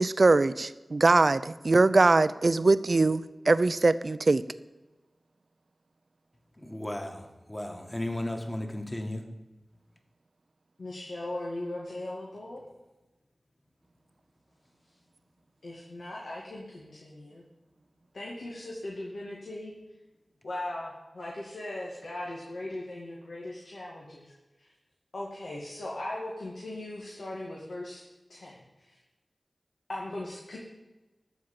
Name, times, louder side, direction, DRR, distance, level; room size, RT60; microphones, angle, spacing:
voice 1, 0.0-4.4, right 3 dB, 60° right, 15 dB, 0.5 m, -22 dB
voice 2, 6.6-9.2, left 1 dB, 20° left, 4 dB, 1.9 m, -35 dB
voice 3, 10.8-12.6 15.6-17.4 18.1-19.7 20.4-24.3 24.6-24.7 25.1-28.0 28.3-29.0 29.9-30.6, left 1 dB, 80° left, -4 dB, 2.2 m, -39 dB
13.5 x 5.1 x 7.6 m, 1.1 s
cardioid pair, 40°, 0 cm